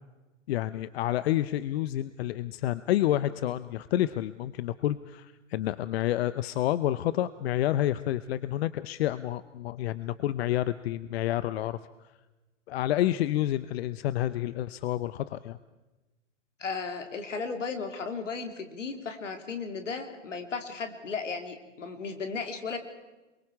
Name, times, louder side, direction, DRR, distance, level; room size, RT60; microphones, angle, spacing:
voice 1, 0.5-11.8 12.7-15.6, left 13 dB, 55° left, 15 dB, 0.8 m, -29 dB
voice 2, 16.6-22.8, left 5 dB, 80° left, 6 dB, 3.2 m, -35 dB
26.5 x 23.5 x 4.8 m, 1.1 s
hypercardioid pair, 105°, 36 cm